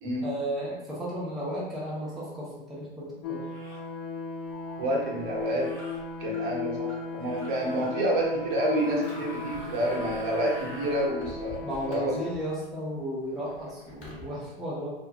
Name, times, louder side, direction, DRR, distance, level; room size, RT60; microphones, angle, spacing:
voice 1, 0.2-3.4 11.6-14.9, equal, ahead, -6 dB, 0.5 m, -34 dB
sound 1, 2.0-2.2 3.4-3.9 5.3-6.0 7.2-7.9 8.7-11.1, equal, 85° right, 1.1 m, -46 dB
sound 2, 3.2-12.3, left 5 dB, 60° left, 0.5 m, -37 dB
Alarm, 4.5-12.6 13.0-14.2, left 2 dB, 25° left, 0.9 m, -49 dB
voice 2, 4.8-5.7 6.2-12.1, right 1 dB, 55° right, -2 dB, 0.9 m, -29 dB
2.6 x 2.3 x 2.4 m, 0.95 s
hypercardioid pair, 95°, 30 cm